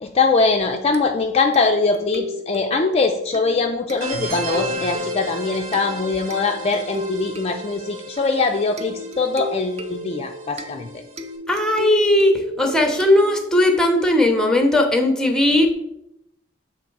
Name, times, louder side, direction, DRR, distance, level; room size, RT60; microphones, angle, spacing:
voice 1, 0.0-11.0, left 4 dB, 30° left, 4 dB, 0.4 m, -22 dB
sound 1, 0.9-13.7, equal, 35° right, 0.6 m, -35 dB
sound 2, 4.0-11.3, right 1 dB, 75° right, 1.1 m, -34 dB
voice 2, 11.5-15.7, left 1 dB, 5° left, 5 dB, 0.7 m, -17 dB
7.3 x 3.1 x 4.5 m, 0.82 s
head